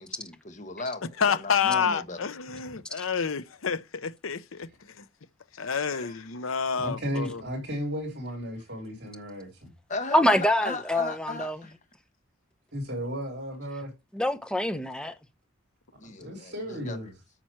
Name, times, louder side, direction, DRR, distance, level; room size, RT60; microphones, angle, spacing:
voice 1, 0.0-2.3 5.9-6.2 9.9-11.7 16.0-17.0, left 3 dB, 35° left, 1.2 m, -37 dB
voice 2, 1.2-4.7 5.0-5.1 5.6-7.4, left 6 dB, 75° left, 0.8 m, -28 dB
voice 3, 6.8-9.7 12.7-13.9 16.0-17.1, equal, 50° right, 3.7 m, -34 dB
voice 4, 10.1-11.6 14.1-15.1, left 1 dB, 5° left, 0.7 m, -25 dB
9.0 x 6.0 x 4.5 m
head